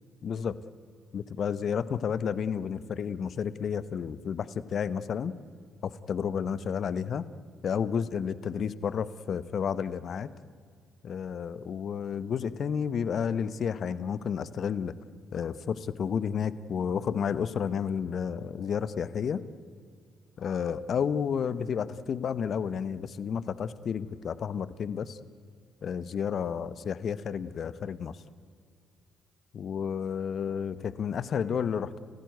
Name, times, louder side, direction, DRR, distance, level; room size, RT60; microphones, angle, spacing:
voice 1, 0.2-0.6 1.1-5.3 5.8-7.3 7.6-10.3 11.0-14.9 15.3-19.4 20.4-25.2 25.8-28.2 29.5-32.0, left 7 dB, 55° left, 16 dB, 1.0 m, -31 dB
30.0 x 15.0 x 9.3 m, 2.1 s
supercardioid pair, 60°, 0 cm